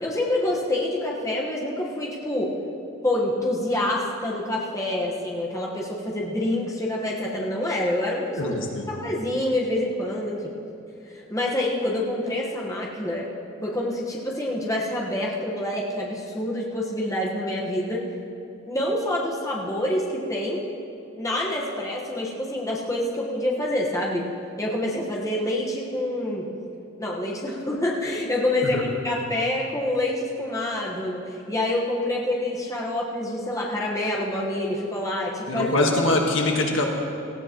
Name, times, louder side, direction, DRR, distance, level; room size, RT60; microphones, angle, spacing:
voice 1, 0.0-2.5 3.0-8.5 8.9-10.5 11.1-13.3 13.6-18.1 18.7-20.6 21.2-24.2 24.6-26.4 27.0-35.7, left 1 dB, 15° left, -4 dB, 1.3 m, -27 dB
voice 2, 8.4-8.9 28.6-28.8 35.5-36.9, left 2 dB, 70° left, 1 dB, 1.6 m, -23 dB
18.0 x 15.0 x 3.1 m, 2.8 s
head